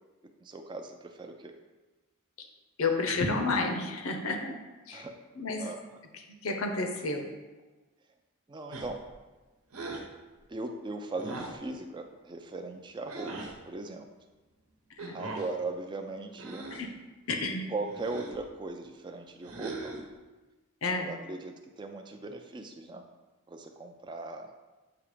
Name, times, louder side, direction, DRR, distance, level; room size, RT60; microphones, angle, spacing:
voice 1, 0.4-1.5 4.9-5.1 5.6-5.8 8.5-9.0 10.5-13.3 13.7-14.1 15.1-16.7 17.7-19.9 20.9-23.0 23.5-24.5, right 3 dB, 20° right, 4 dB, 0.3 m, -38 dB
voice 2, 2.8-4.5 4.9-5.1 5.4-5.7 6.4-7.3 15.0-15.1 16.7-16.9 17.3-17.7 20.8-21.1, left 3 dB, 70° left, 4 dB, 0.7 m, -30 dB
sound 1, 8.7-9.1 9.7-10.1 11.2-11.6 13.1-13.5 15.0-15.5 16.3-16.9 17.9-18.4 19.4-20.1, right 2 dB, 75° right, 1.0 m, -40 dB
6.9 x 2.9 x 4.9 m, 1.2 s
head